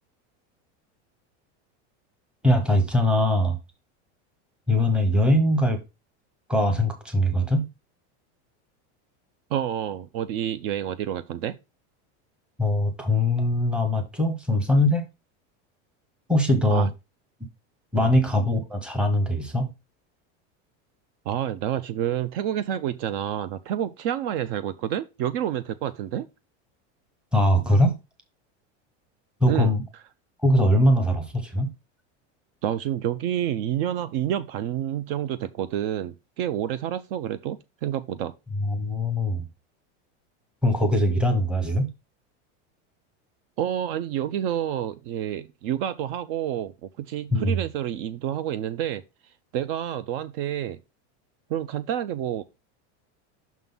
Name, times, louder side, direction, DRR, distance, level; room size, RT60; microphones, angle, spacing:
voice 1, 2.4-3.6 4.7-5.8 6.5-7.7 12.6-15.0 16.3-16.9 17.9-19.7 27.3-28.0 29.4-29.8 30.4-31.7 38.6-39.4 40.6-41.9 47.3-47.6, left 1 dB, 5° right, 0.8 m, -21 dB
voice 2, 9.5-11.6 16.7-16.9 18.0-18.1 21.3-26.3 29.5-29.7 32.6-38.3 43.6-49.0 49.5-50.8 51.5-52.4, right 10 dB, 55° right, 0.5 m, -29 dB
6.1 x 3.8 x 5.4 m
supercardioid pair, 165°, 35 cm